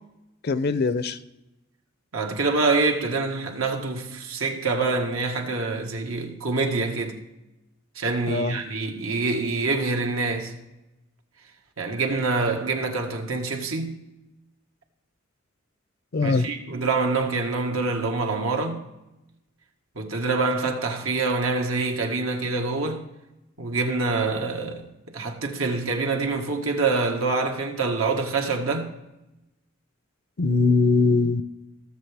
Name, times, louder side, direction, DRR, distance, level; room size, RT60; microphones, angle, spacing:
voice 1, 0.4-1.2 8.3-8.6 16.1-16.5 30.4-31.4, left 3 dB, 50° left, 0.6 m, -21 dB
voice 2, 2.1-7.2 7.9-10.6 11.8-14.0 16.2-18.8 19.9-23.0 23.6-28.9, right 3 dB, 80° right, 1.6 m, -26 dB
19.0 x 7.2 x 3.4 m
head